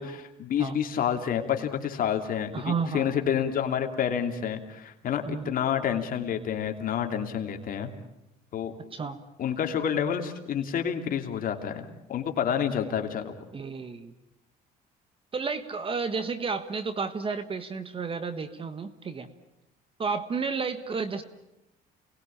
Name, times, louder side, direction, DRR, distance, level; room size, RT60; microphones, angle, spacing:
voice 1, 0.0-7.9 8.5-8.7 9.4-13.3, left 8 dB, 55° left, 5 dB, 2.9 m, -29 dB
voice 2, 2.5-3.2 5.2-5.5 8.9-9.2 13.5-14.1 15.3-19.3 20.0-21.2, right 5 dB, 30° right, 11 dB, 1.4 m, -32 dB
28.5 x 20.0 x 8.7 m, 0.90 s
cardioid pair, 110°, 17 cm